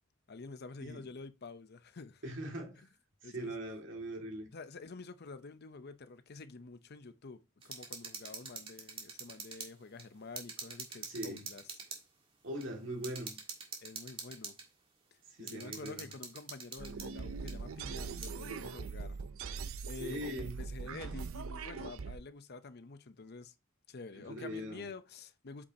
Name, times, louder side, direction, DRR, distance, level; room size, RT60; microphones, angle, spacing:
voice 1, 0.3-2.5 3.2-3.5 4.5-11.8 13.8-14.5 15.4-19.2 19.9-23.5 23.9-25.6, left 3 dB, 50° left, 0.7 m, -48 dB
voice 2, 2.2-2.8 3.2-4.5 11.1-11.4 12.4-13.3 15.3-16.1 20.0-20.6 24.2-24.9, right 1 dB, 65° right, 2.2 m, -41 dB
sound 1, 7.6-9.7 10.0-10.1 10.4-12.0 12.6-12.7 13.0-14.7 15.5-17.1 17.5-17.6 18.2-18.3, right 5 dB, 25° right, 1.7 m, -45 dB
sound 2, 16.8-22.2, right 5 dB, 85° right, 0.6 m, -41 dB
8.3 x 5.5 x 2.8 m
head